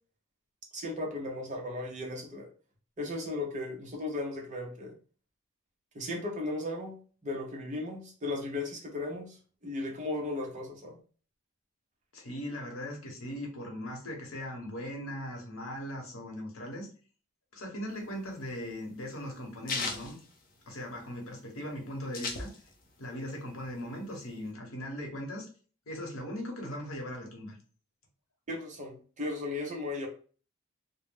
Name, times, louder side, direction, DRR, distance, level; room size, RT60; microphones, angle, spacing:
voice 1, 0.7-2.5 3.0-4.9 5.9-6.9 7.2-9.4 9.6-11.0 28.5-30.1, left 2 dB, 35° right, 1 dB, 0.6 m, -36 dB
voice 2, 12.1-16.9 17.5-20.2 20.7-22.5 23.0-25.5 25.9-27.6, equal, 80° left, 1 dB, 0.8 m, -39 dB
sound 1, 17.9-21.1 21.4-21.5 21.7-23.0 23.3-24.5, left 4 dB, 40° left, 0.5 m, -37 dB
2.2 x 2.0 x 3.3 m, 0.40 s
head